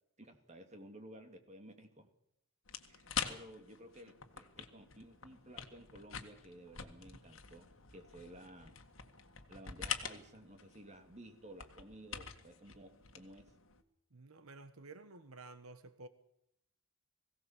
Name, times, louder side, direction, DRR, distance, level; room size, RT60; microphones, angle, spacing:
voice 1, 0.2-2.1 2.9-8.8 9.5-13.5, right 1 dB, 35° right, 2.6 m, -55 dB
sound 1, 2.7-13.8, left 7 dB, 65° left, 1.8 m, -46 dB
voice 2, 14.1-16.1, right 3 dB, 90° right, 1.3 m, -52 dB
21.5 x 17.0 x 7.4 m
head